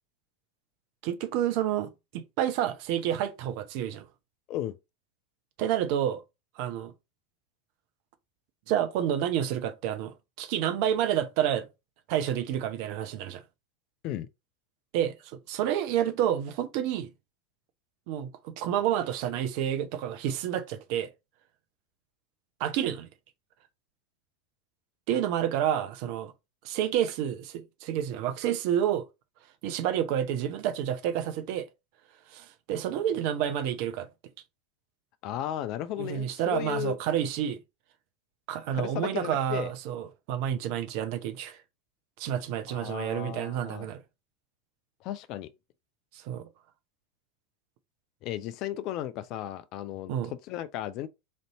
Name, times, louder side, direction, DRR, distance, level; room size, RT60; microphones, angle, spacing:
voice 1, 1.0-4.1 5.6-6.2 6.6-6.9 8.7-11.7 12.1-13.4 14.9-15.1 15.5-17.1 18.1-21.1 22.6-23.1 25.1-26.3 26.6-29.1 29.6-31.7 32.3-34.1 36.0-37.6 38.5-41.6 42.2-44.0 46.1-46.5 50.1-50.3, right 10 dB, 55° right, 0.6 m, -29 dB
voice 2, 35.2-37.0 38.7-39.7 42.7-43.9 45.0-45.5 48.2-51.1, left 12 dB, 45° left, 0.4 m, -35 dB
3.2 x 2.6 x 4.1 m
figure-of-eight pair, 85°, 0 cm